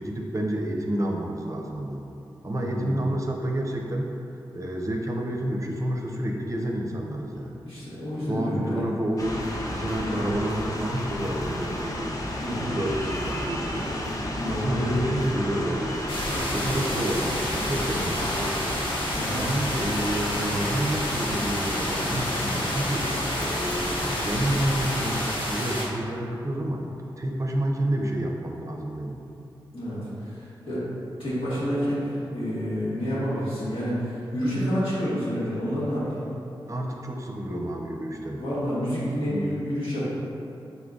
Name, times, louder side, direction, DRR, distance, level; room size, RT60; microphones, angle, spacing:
voice 1, 0.0-2.0 2.4-4.1 4.5-7.6 8.3-9.4 9.7-12.2 12.5-13.9 14.5-16.0 16.5-18.5 19.3-23.1 23.4-26.8 27.2-29.2 36.7-38.4 39.2-39.5, right 1 dB, 35° right, 1 dB, 0.5 m, -29 dB
voice 2, 2.5-3.1 7.6-8.8 9.9-10.2 12.4-12.7 13.8-13.9 14.4-15.1 19.1-19.5 29.7-30.8 31.2-36.3 38.4-40.0, equal, 85° left, -10 dB, 1.3 m, -29 dB
sound 1, 9.2-25.3, left 1 dB, 40° left, 0.5 m, -32 dB
sound 2, 16.1-25.8, left 1 dB, 70° left, 0.8 m, -30 dB
4.0 x 3.7 x 2.4 m, 2.7 s
cardioid pair, 55°, 9 cm